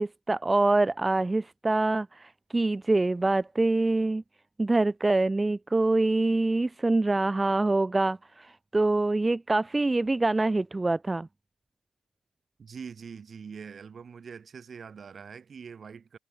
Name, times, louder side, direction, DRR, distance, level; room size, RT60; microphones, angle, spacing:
voice 1, 0.0-4.2 4.6-11.3, right 2 dB, 20° right, 0.6 m, -25 dB
voice 2, 12.6-16.2, right 6 dB, 50° right, 4.8 m, -43 dB
hypercardioid pair, 50°, 0 cm